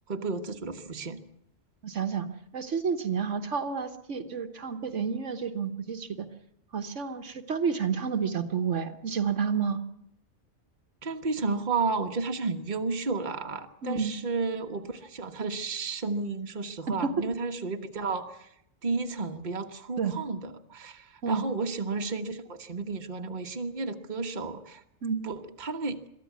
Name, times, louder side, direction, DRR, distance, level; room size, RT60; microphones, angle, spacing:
voice 1, 0.1-1.2 11.0-18.5 18.8-24.8 25.2-26.0, right 4 dB, 40° right, 5 dB, 1.4 m, -32 dB
voice 2, 1.8-2.3 2.5-6.3 6.7-9.8 13.8-14.1 17.0-17.1 20.0-20.1 21.2-21.4 25.0-25.2, right 6 dB, 70° right, 7 dB, 1.5 m, -30 dB
23.0 x 14.0 x 9.5 m, 0.75 s
omnidirectional pair, 1.3 m